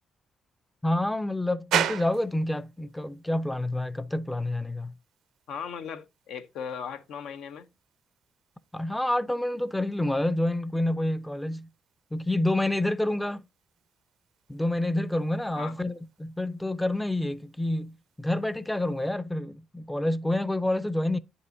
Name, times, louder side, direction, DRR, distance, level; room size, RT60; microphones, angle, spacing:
voice 1, 0.8-4.9 8.7-11.7 12.1-13.5 14.5-21.2, left 1 dB, 10° left, 0.4 m, -28 dB
sound 1, 1.7-19.2, right 10 dB, 90° right, 0.6 m, -40 dB
voice 2, 5.5-7.7 15.5-15.7, left 7 dB, 85° left, 0.7 m, -38 dB
9.2 x 5.3 x 2.6 m
cardioid pair, 95°, 0 cm